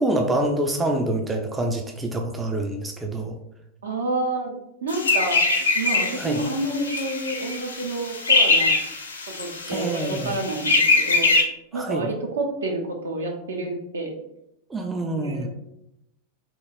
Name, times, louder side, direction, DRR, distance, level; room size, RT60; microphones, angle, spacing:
voice 1, 0.0-3.4 6.2-6.4 9.7-10.4 11.7-12.1 14.7-15.5, right 1 dB, 10° right, 3 dB, 0.3 m, -26 dB
voice 2, 3.8-5.4 5.7-8.8 9.4-11.3 11.7-14.1 15.2-15.5, right 2 dB, 70° right, 1 dB, 0.6 m, -29 dB
sound 1, 4.9-11.4, left 3 dB, 70° left, 0.5 m, -23 dB
3.0 x 2.7 x 2.3 m, 0.82 s
figure-of-eight pair, 90°, 0 cm